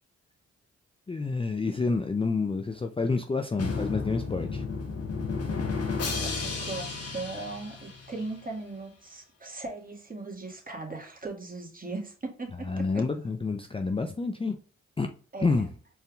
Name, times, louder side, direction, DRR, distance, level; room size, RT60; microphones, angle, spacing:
voice 1, 1.1-4.6 12.6-14.6 15.0-15.1 15.4-15.7, left 4 dB, 20° left, 5 dB, 0.5 m, -28 dB
Drum, 3.6-8.4, left 4 dB, 55° left, 1.3 m, -33 dB
voice 2, 6.2-13.0 15.3-15.6, right 3 dB, 30° right, 0 dB, 1.7 m, -38 dB
4.3 x 3.5 x 2.3 m, 0.39 s
supercardioid pair, 45°, 30 cm